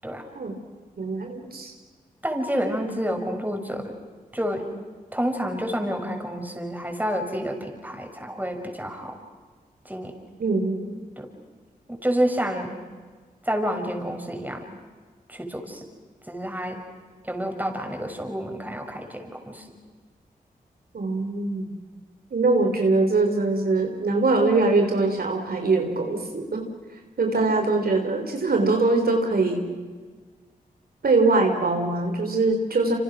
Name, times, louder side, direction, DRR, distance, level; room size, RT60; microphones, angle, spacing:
voice 1, 1.0-1.7 10.4-11.0 20.9-21.7 22.3-26.6 27.2-29.7 31.0-33.0, right 3 dB, 65° right, 3 dB, 3.8 m, -22 dB
voice 2, 2.2-3.9 4.3-4.7 5.1-9.2 9.8-10.2 11.2-11.3 11.9-12.7 13.4-14.7 15.3-15.8 16.3-16.8 17.2-19.6, equal, 10° right, 3 dB, 6.6 m, -29 dB
27.5 x 27.5 x 6.4 m, 1.5 s
cardioid pair, 40°, 17 cm